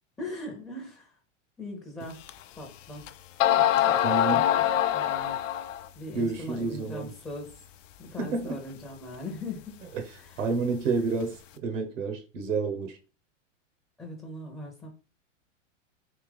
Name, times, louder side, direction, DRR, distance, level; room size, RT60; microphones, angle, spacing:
voice 1, 0.2-1.2 1.6-2.2 2.5-3.1 3.6-4.4 4.9-5.4 6.0-7.6 8.0-9.8 10.2-10.5 10.8-10.9 14.0-14.9, left 1 dB, 5° left, 0.5 m, -40 dB
sound 1, 2.3-2.4 3.1-3.2 3.4-5.9, left 11 dB, 75° left, 0.5 m, -24 dB
voice 2, 4.0-4.5 6.1-7.1 8.2-8.6 10.4-13.0, right 3 dB, 75° right, 1.0 m, -29 dB
3.6 x 3.0 x 3.4 m
hypercardioid pair, 125°, 38 cm